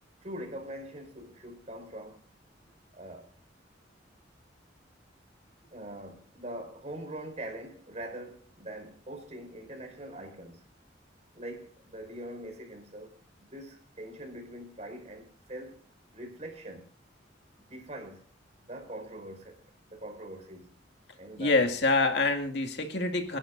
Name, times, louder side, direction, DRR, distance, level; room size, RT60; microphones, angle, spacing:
voice 1, 0.2-2.2 2.9-3.3 5.7-10.6 11.4-15.8 16.1-16.9 17.6-18.2 18.6-19.6 19.9-20.7 21.2-21.6, right 1 dB, 40° right, 5.2 m, -43 dB
voice 2, 21.4-23.4, left 3 dB, 65° left, 2.3 m, -26 dB
30.0 x 11.5 x 2.7 m
head